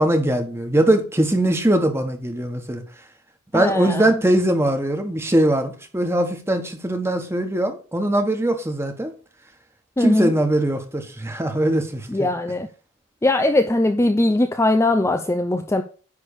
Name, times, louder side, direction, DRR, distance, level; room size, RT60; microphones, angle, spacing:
voice 1, 0.0-2.8 3.5-9.1 10.0-12.3, right 1 dB, 10° right, 1.2 m, -21 dB
voice 2, 3.5-4.1 10.0-10.3 12.1-12.7 13.2-15.8, left 2 dB, 10° left, 0.4 m, -20 dB
9.8 x 3.4 x 6.7 m
head